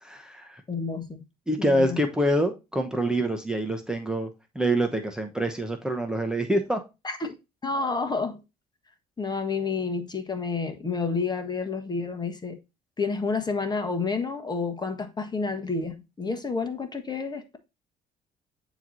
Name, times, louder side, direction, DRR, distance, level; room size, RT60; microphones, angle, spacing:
voice 1, 0.0-0.6 1.5-4.3 4.5-6.8, right 1 dB, 5° right, 1.0 m, -26 dB
voice 2, 0.7-1.2 1.6-2.0 7.0-7.4 7.6-8.4 9.2-12.6 13.0-17.6, left 4 dB, 25° left, 1.3 m, -29 dB
9.0 x 3.1 x 4.0 m
supercardioid pair, 70°, 17 cm